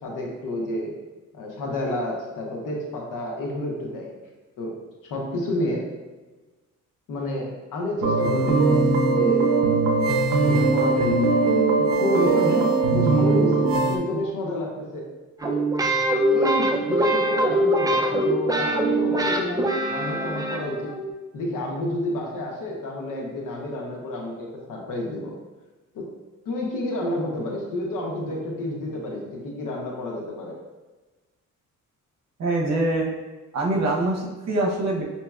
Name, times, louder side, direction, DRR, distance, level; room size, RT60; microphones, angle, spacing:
voice 1, 0.0-0.9 1.3-4.1 4.6-4.7 5.0-5.9 7.1-9.5 10.5-11.4 11.8-15.1 15.5-15.6 16.3-20.9 21.3-25.3 25.9-26.1 26.4-30.6, left 1 dB, 85° left, -1 dB, 1.0 m, -30 dB
sound 1, 8.0-14.0, right 3 dB, 85° right, 0.5 m, -20 dB
sound 2, 15.4-21.0, right 1 dB, 10° right, 0.4 m, -23 dB
voice 2, 32.4-33.1 33.5-35.0, right 2 dB, 55° right, -2 dB, 0.9 m, -24 dB
5.5 x 2.8 x 2.3 m, 1.2 s
cardioid pair, 120°, 31 cm